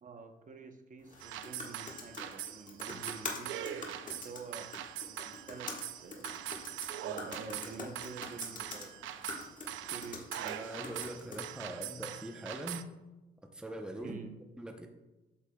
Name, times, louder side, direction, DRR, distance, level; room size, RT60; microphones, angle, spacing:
voice 1, 0.0-3.7 4.0-6.5 7.0-9.0 9.9-11.1 14.0-14.3, right 4 dB, 40° right, 5 dB, 0.8 m, -48 dB
sound 1, 1.0-11.6, left 3 dB, 40° left, 1.6 m, -46 dB
sound 2, 1.2-12.8, right 11 dB, 80° right, 0.5 m, -42 dB
voice 2, 10.4-12.9 13.5-14.3 14.6-14.9, right 1 dB, 5° right, 4 dB, 0.8 m, -42 dB
8.3 x 6.9 x 2.3 m, 1.1 s
cardioid pair, 90°, 20 cm